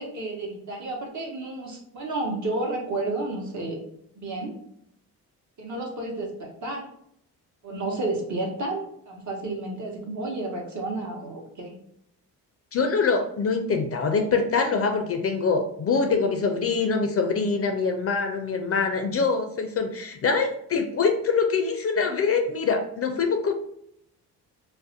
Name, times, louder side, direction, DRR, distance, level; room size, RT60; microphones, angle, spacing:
voice 1, 0.0-3.8 4.2-4.6 5.6-6.9 7.6-11.7, right 2 dB, 50° right, 0 dB, 0.9 m, -31 dB
voice 2, 12.7-23.5, left 4 dB, 40° left, 4 dB, 0.4 m, -24 dB
2.4 x 2.1 x 2.6 m, 0.71 s
supercardioid pair, 70°, 38 cm